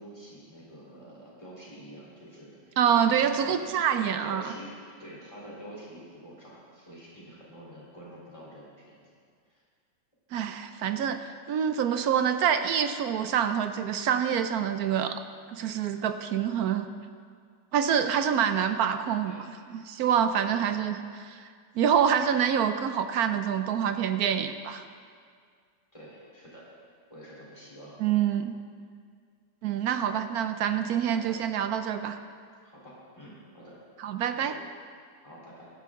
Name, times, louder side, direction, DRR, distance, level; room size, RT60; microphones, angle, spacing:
voice 1, 0.0-2.8 3.2-3.6 3.9-4.7 5.0-8.9 9.5-9.6 19.2-19.5 20.4-20.5 25.9-26.7 27.1-28.0 31.1-31.4 32.6-33.8 34.3-34.6 35.2-35.7, equal, 15° left, -6 dB, 3.5 m, -47 dB
voice 2, 2.8-4.5 10.3-15.2 15.5-16.9 17.7-19.3 19.7-21.5 21.7-24.8 28.0-28.6 29.6-32.2 34.0-34.6, right 8 dB, 70° right, 9 dB, 0.9 m, -26 dB
16.0 x 12.0 x 3.7 m, 2.1 s
omnidirectional pair, 2.1 m